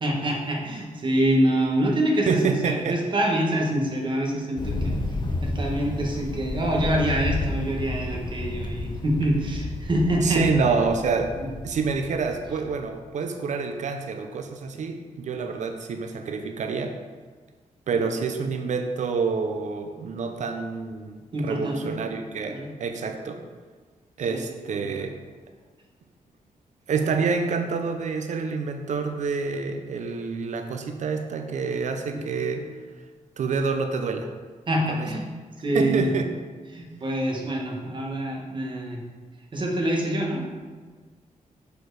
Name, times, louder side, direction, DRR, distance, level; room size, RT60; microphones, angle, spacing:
voice 1, 0.0-4.9 5.4-10.4 17.9-18.0 21.3-21.9 22.5-22.7 24.3-24.5 32.1-32.2 34.7-35.3 35.6-36.1 36.7-39.0 39.5-40.4, right 1 dB, 35° right, -1 dB, 1.3 m, -25 dB
voice 2, 2.3-3.0 10.2-11.3 11.6-16.9 17.9-23.4 24.2-25.1 26.9-32.7 33.4-34.3 34.9-35.1 35.7-36.3, right 5 dB, 65° right, 5 dB, 0.6 m, -27 dB
Thunder, 4.6-12.8, left 2 dB, 35° left, 0.9 m, -31 dB
6.6 x 4.5 x 4.7 m, 1.4 s
wide cardioid pair, 135°, 13 cm